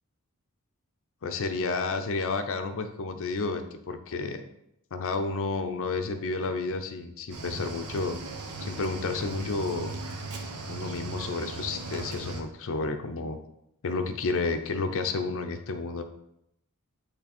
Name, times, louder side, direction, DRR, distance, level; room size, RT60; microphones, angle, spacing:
voice 1, 1.2-4.4 4.9-8.2 8.6-9.9 10.7-13.4 13.8-16.0, left 3 dB, 65° left, 7 dB, 0.6 m, -31 dB
Cricket / Waves surf, 7.3-12.4, right 3 dB, 80° right, 1.0 m, -37 dB
8.4 x 3.4 x 4.2 m, 0.78 s
head